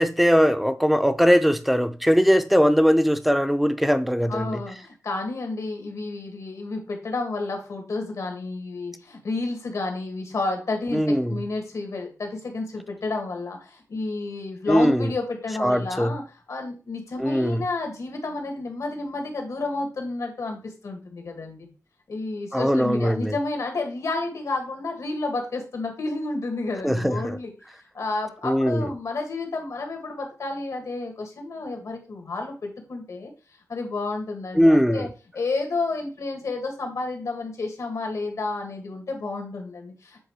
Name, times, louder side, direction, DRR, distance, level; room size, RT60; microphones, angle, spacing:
voice 1, 0.0-4.6 10.9-11.4 14.7-15.1 15.6-16.1 17.2-17.6 22.5-23.3 26.8-27.4 28.4-28.8 34.6-35.1, equal, ahead, 0.6 m, -20 dB
voice 2, 4.3-16.2 16.5-21.7 22.1-27.5 27.9-33.3 33.7-35.1 35.3-40.2, left 3 dB, 70° left, 1.9 m, -31 dB
7.8 x 3.6 x 4.7 m
wide cardioid pair, 115°, 6 cm